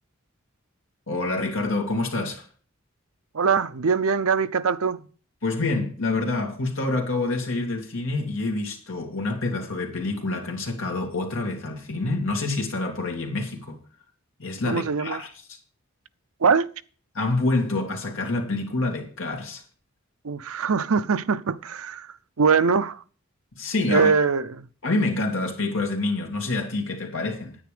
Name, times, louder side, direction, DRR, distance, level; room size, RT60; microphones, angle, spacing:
voice 1, 1.1-2.5 5.4-13.8 14.4-15.6 17.1-19.6 23.5-24.1 24.8-27.6, left 2 dB, 65° left, 2.7 m, -27 dB
voice 2, 3.3-5.0 14.7-15.2 16.4-16.7 20.2-22.1 22.4-23.0 23.9-24.7, right 5 dB, 80° right, 0.6 m, -22 dB
9.8 x 9.5 x 5.1 m
head